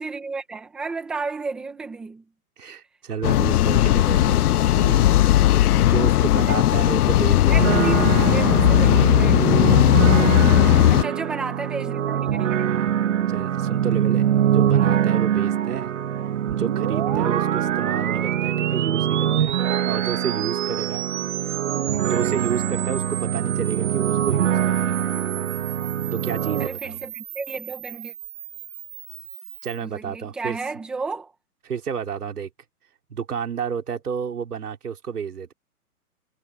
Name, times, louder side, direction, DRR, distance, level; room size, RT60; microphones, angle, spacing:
voice 1, 0.0-2.2 6.4-6.5 7.5-9.6 10.9-12.9 26.6-28.1 29.8-31.3, right 4 dB, ahead, 0.8 m, -32 dB
voice 2, 2.6-4.4 4.7-5.1 5.7-7.7 10.0-11.2 12.6-13.0 13.3-15.9 16.5-19.6 19.9-21.0 22.0-25.0 26.1-27.0 29.6-30.6 31.7-32.5 33.1-35.5, right 7 dB, 85° right, 4.2 m, -31 dB
sound 1, 3.2-11.0, left 13 dB, 80° left, 0.6 m, -17 dB
sound 2, 7.5-26.7, right 10 dB, 55° right, 1.5 m, -23 dB
sound 3, 16.5-29.8, right 12 dB, 30° right, 1.7 m, -33 dB
hypercardioid pair, 175°, 45 cm